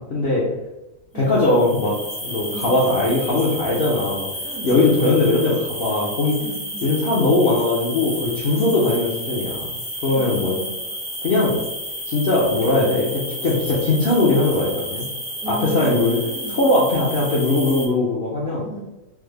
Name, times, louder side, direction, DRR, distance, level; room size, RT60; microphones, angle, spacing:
voice 1, 0.1-0.4 1.1-1.9 2.2-4.3 4.6-6.4 6.8-9.7 10.0-10.6 11.2-11.6 12.1-15.0 15.5-16.2 16.5-18.6, left 2 dB, 60° left, -5 dB, 0.6 m, -20 dB
sound 1, 1.3-17.9, equal, 10° left, 0.4 m, -31 dB
voice 2, 4.4-5.0 6.4-6.9 8.5-8.7 10.1-10.8 15.4-16.7 18.6-18.9, right 3 dB, 70° right, 1 dB, 1.0 m, -34 dB
3.3 x 2.0 x 3.3 m, 0.98 s
omnidirectional pair, 1.6 m